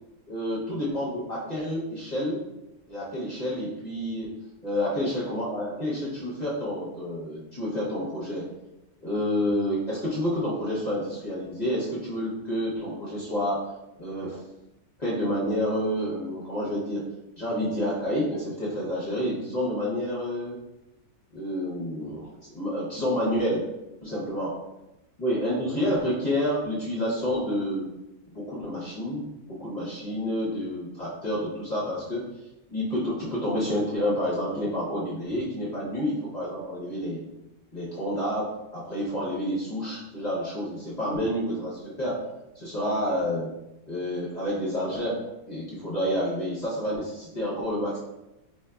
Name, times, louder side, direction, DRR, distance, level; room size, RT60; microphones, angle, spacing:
voice 1, 0.3-2.4 2.9-4.3 4.6-8.5 9.0-13.7 14.0-14.4 15.0-17.1 17.4-20.6 21.3-23.6 24.0-24.5 25.2-27.9 28.3-32.2 32.7-37.2 37.7-42.2 42.5-43.5 43.9-45.2 45.5-48.0, equal, 40° left, -7 dB, 0.6 m, -29 dB
4.4 x 2.5 x 2.2 m, 0.95 s
omnidirectional pair, 1.6 m